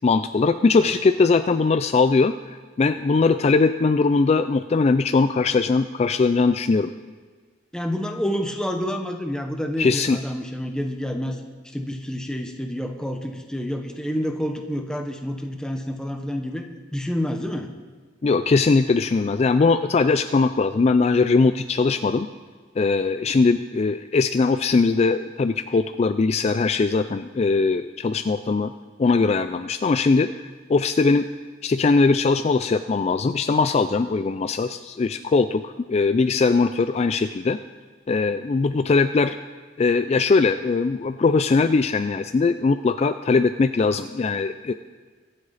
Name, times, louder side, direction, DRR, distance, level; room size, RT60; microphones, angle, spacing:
voice 1, 0.0-6.9 9.8-10.2 18.2-22.3 22.8-28.7 29.0-31.3 31.6-37.6 38.1-39.4 39.8-44.7, left 4 dB, 35° left, 10 dB, 0.3 m, -20 dB
voice 2, 7.7-11.4 11.7-16.6 16.9-17.7, equal, 5° left, 4 dB, 1.1 m, -28 dB
23.5 x 7.9 x 4.1 m, 1.5 s
head